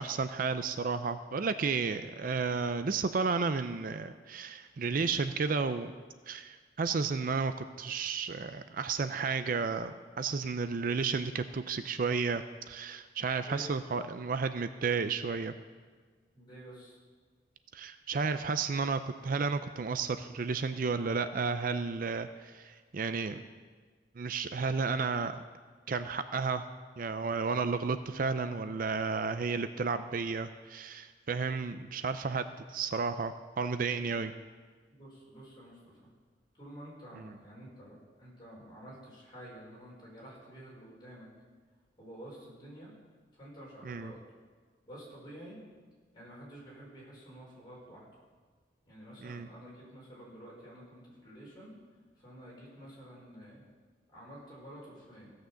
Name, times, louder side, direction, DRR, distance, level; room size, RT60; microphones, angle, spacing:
voice 1, 0.0-5.9 6.3-15.5 17.7-23.4 24.2-25.4 25.9-26.7 27.0-34.3 43.8-44.1 49.2-49.5, right 4 dB, 50° right, 10 dB, 0.4 m, -32 dB
voice 2, 13.4-13.7 16.3-17.0 34.9-36.1 36.5-41.3 42.0-42.9 43.3-44.2 44.9-45.6 46.1-48.2 48.8-51.7 52.2-53.6 54.1-55.3, right 1 dB, 25° left, -5 dB, 4.8 m, -50 dB
16.0 x 6.5 x 7.0 m, 1.5 s
head